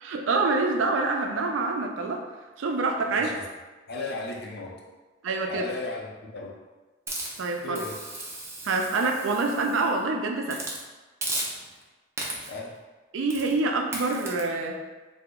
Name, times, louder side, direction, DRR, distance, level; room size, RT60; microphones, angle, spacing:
voice 1, 0.0-2.2 2.6-3.3 5.2-5.6 7.4-7.8 8.7-10.6 13.1-14.8, right 3 dB, 80° right, 3 dB, 0.4 m, -26 dB
voice 2, 3.1-3.4 3.9-4.8 5.5-6.5 7.6-8.0 12.5-12.8, left 2 dB, 55° left, -2 dB, 0.5 m, -35 dB
Hiss, 7.1-9.9 10.5-10.8 11.2-11.8 12.2-12.6 13.3-13.5 13.9-14.4, right 2 dB, 15° right, 0.4 m, -35 dB
2.9 x 2.0 x 3.5 m, 1.3 s
head